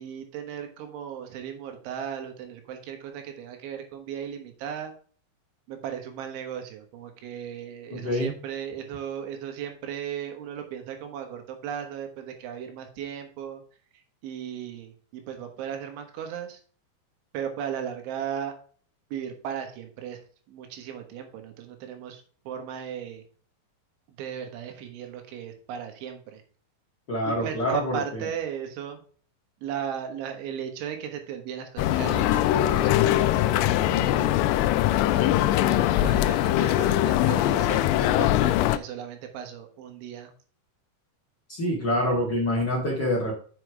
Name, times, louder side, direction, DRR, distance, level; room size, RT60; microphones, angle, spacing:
voice 1, 0.0-5.0 5.7-13.6 14.2-16.6 17.3-18.5 19.1-20.2 20.5-23.2 24.2-26.4 27.3-29.0 29.6-34.4 34.9-40.3, right 8 dB, 85° right, 5 dB, 3.9 m, -36 dB
voice 2, 7.9-8.3 27.1-28.2 41.5-43.3, equal, 55° left, -4 dB, 1.1 m, -26 dB
sound 1, 31.8-38.8, left 13 dB, 85° left, 2.5 m, -22 dB
7.5 x 6.2 x 4.8 m, 0.44 s
omnidirectional pair, 5.3 m